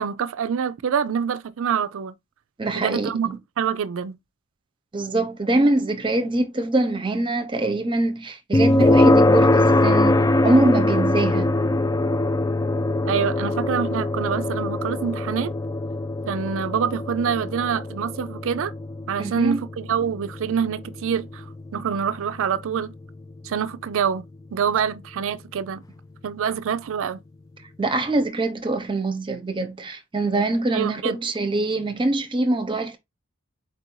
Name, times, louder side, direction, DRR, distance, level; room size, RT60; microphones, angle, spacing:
voice 1, 0.0-2.1 2.8-4.2 13.0-15.5 16.3-18.7 19.1-21.5 21.7-22.9 23.4-24.2 24.5-25.8 26.2-27.2 30.7-31.2, right 7 dB, 65° right, 0.4 m, -26 dB
voice 2, 2.6-3.4 4.9-11.5 19.2-19.6 27.8-33.0, right 2 dB, 25° right, 0.8 m, -23 dB
sound 1, 8.5-23.5, left 2 dB, 15° left, 0.3 m, -22 dB
4.4 x 2.6 x 4.5 m
head